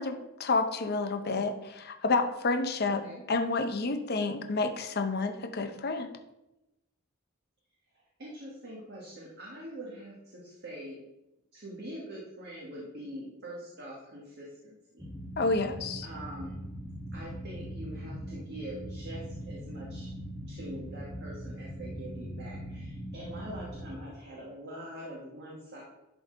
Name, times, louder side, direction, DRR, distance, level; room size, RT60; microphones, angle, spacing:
voice 1, 0.0-6.1 15.4-16.1, left 3 dB, 50° left, 7 dB, 0.7 m, -29 dB
voice 2, 2.8-3.2 7.9-11.0 11.5-15.0 16.0-16.5 17.1-20.1 20.5-25.8, right 1 dB, 50° right, -4 dB, 1.6 m, -44 dB
sound 1, 15.0-24.0, equal, ahead, 1.3 m, -41 dB
11.0 x 3.9 x 3.9 m, 0.93 s
head